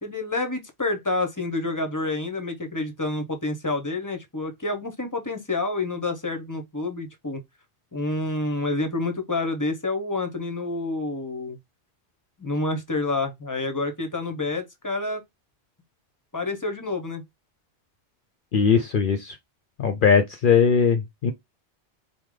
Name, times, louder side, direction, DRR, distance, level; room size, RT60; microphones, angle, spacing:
voice 1, 0.0-7.4 7.9-11.6 12.4-15.2 16.3-17.2, left 2 dB, 20° left, 0.7 m, -28 dB
voice 2, 18.5-19.4 19.8-21.3, left 6 dB, 60° left, 0.7 m, -20 dB
4.8 x 2.1 x 3.7 m
omnidirectional pair, 1.1 m